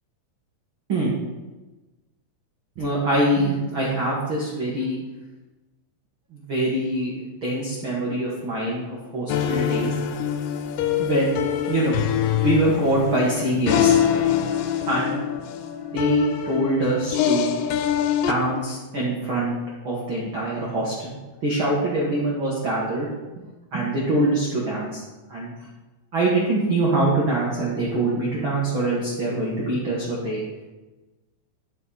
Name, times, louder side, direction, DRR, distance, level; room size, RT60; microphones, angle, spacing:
voice 1, 2.8-5.0 6.3-9.9 11.0-12.0 12.4-13.9 14.9-15.2 15.9-17.5 18.3-19.5 19.8-23.1 23.7-25.0 25.3-25.5 26.1-30.4, right 1 dB, 75° right, -5 dB, 1.1 m, -24 dB
sound 1, 9.3-18.3, left 9 dB, 90° left, 2.9 m, -24 dB
11.5 x 6.7 x 4.2 m, 1.1 s
omnidirectional pair, 5.2 m